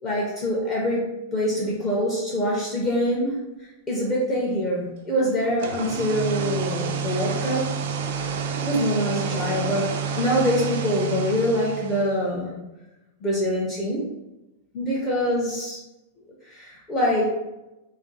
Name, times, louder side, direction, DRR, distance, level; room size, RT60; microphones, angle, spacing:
voice 1, 0.0-1.1 1.3-3.4 3.9-7.7 8.1-8.3 8.6-12.5 13.2-14.1 14.7-15.8 16.4-17.4, equal, 15° left, -6 dB, 0.5 m, -25 dB
sound 1, 5.4-12.2, right 6 dB, 55° right, 0.3 m, -29 dB
2.4 x 2.3 x 3.8 m, 0.99 s
supercardioid pair, 175°, 0 cm